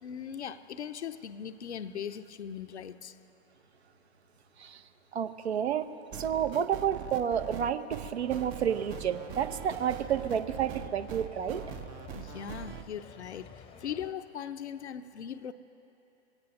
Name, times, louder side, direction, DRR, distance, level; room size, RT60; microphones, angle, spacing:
voice 1, 0.0-3.2 12.1-15.5, left 8 dB, 80° left, 11 dB, 0.6 m, -39 dB
voice 2, 5.1-5.9 6.1-11.6, right 8 dB, 70° right, 11 dB, 0.7 m, -30 dB
sound 1, 6.1-12.8, right 9 dB, 25° right, 0.5 m, -42 dB
sound 2, 8.2-14.1, left 7 dB, 15° left, 0.7 m, -50 dB
23.0 x 16.5 x 3.0 m, 3.0 s
figure-of-eight pair, 105°, 33 cm